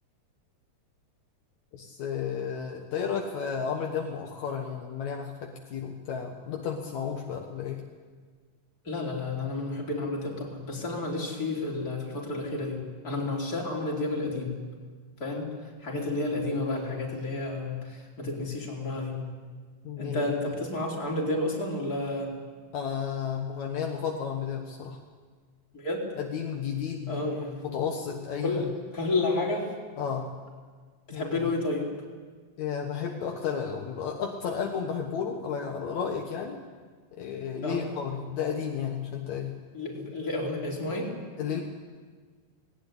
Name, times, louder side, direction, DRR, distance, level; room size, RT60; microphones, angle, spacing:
voice 1, 1.7-7.8 15.9-16.1 19.8-20.5 22.7-25.0 26.2-27.2 27.6-28.6 30.0-30.3 31.1-31.5 32.6-36.6 37.1-39.6 41.4-41.6, left 7 dB, 70° left, 2 dB, 2.7 m, -33 dB
voice 2, 8.8-12.8 13.0-14.5 15.2-15.5 15.8-19.2 20.0-22.3 25.7-26.0 27.1-27.7 28.4-28.7 28.9-29.7 31.1-31.9 37.6-37.8 39.7-41.1, left 2 dB, 30° left, -3 dB, 4.7 m, -31 dB
19.0 x 18.5 x 10.0 m, 1.5 s
omnidirectional pair, 3.4 m